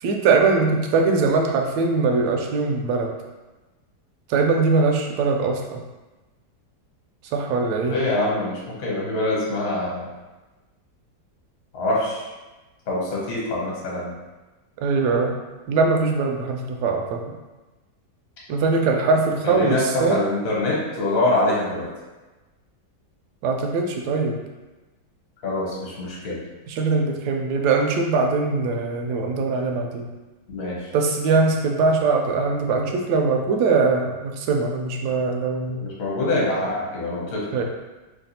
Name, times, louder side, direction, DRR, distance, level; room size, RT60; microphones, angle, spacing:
voice 1, 0.0-3.1 4.3-5.8 7.3-8.0 14.8-15.4 15.7-17.2 18.5-20.2 23.4-24.4 26.7-30.1 30.9-35.8 37.5-37.6, right 4 dB, 75° right, 2 dB, 1.0 m, -21 dB
voice 2, 7.9-10.1 11.7-12.2 12.9-14.1 19.4-21.9 25.4-26.4 30.5-30.9 35.1-35.2 35.7-37.5, left 2 dB, 55° left, -4 dB, 1.3 m, -25 dB
3.2 x 2.3 x 4.1 m, 1.2 s
omnidirectional pair, 1.8 m